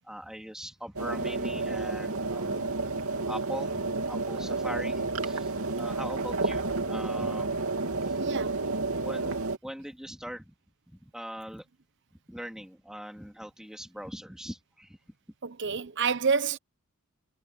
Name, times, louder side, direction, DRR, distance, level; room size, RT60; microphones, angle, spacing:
voice 1, 0.0-3.0 3.3-8.2 8.9-9.4 9.6-10.5 10.9-11.7 12.3-15.0 15.7-15.8, equal, 5° right, 2.6 m, -41 dB
sound 1, 1.0-9.6, right 3 dB, 70° right, 2.8 m, -31 dB
voice 2, 8.2-8.7 15.4-16.6, right 5 dB, 55° right, 0.9 m, -28 dB
head